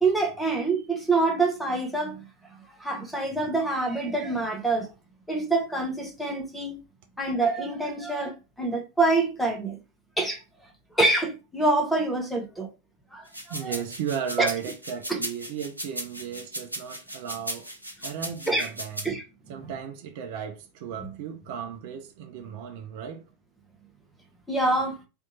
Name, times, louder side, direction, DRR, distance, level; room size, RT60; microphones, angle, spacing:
voice 1, 0.0-2.2 2.8-4.9 5.3-6.8 7.2-9.8 10.2-10.4 11.0-12.7 13.1-13.3 13.6-13.7 14.4-14.5 15.1-15.2 18.5-18.7 19.0-19.2 19.6-19.7 21.0-21.1 24.5-25.0, right 2 dB, ahead, 0.7 m, -26 dB
sound 1, 13.3-19.1, equal, 90° left, 0.6 m, -36 dB
voice 2, 13.5-17.7 18.0-19.1 19.5-23.2, right 8 dB, 50° right, 0.5 m, -35 dB
2.7 x 2.2 x 2.7 m
figure-of-eight pair, 90°, 0 cm